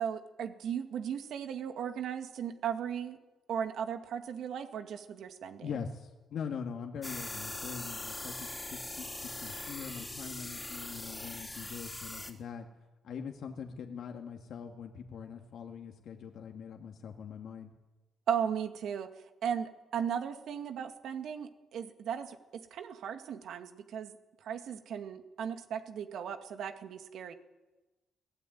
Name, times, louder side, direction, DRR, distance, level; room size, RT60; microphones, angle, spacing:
voice 1, 0.0-3.2 3.5-5.7 18.3-19.1 19.4-22.4 22.7-24.2 24.4-27.3, right 8 dB, 70° right, 7 dB, 2.1 m, -36 dB
voice 2, 5.6-12.7 13.0-17.7, left 6 dB, 70° left, 3 dB, 2.1 m, -42 dB
sound 1, 7.0-12.3, left 2 dB, 10° left, 3.3 m, -41 dB
22.5 x 17.0 x 9.5 m, 1.1 s
cardioid pair, 90°, 0 cm